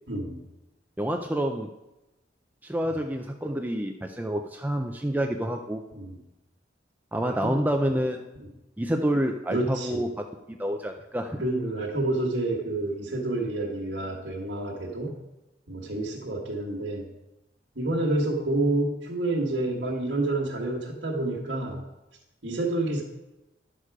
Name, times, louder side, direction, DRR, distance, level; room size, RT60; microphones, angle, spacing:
voice 1, 0.1-0.4 5.9-6.2 7.3-7.6 8.4-8.5 9.5-10.0 11.4-15.2 15.7-17.0 17.8-21.8 22.4-23.0, right 2 dB, 70° right, -4 dB, 1.7 m, -28 dB
voice 2, 1.0-1.7 2.6-5.8 7.1-8.2 8.8-11.4, equal, 10° right, 4 dB, 0.5 m, -28 dB
11.5 x 6.5 x 4.9 m, 0.97 s
head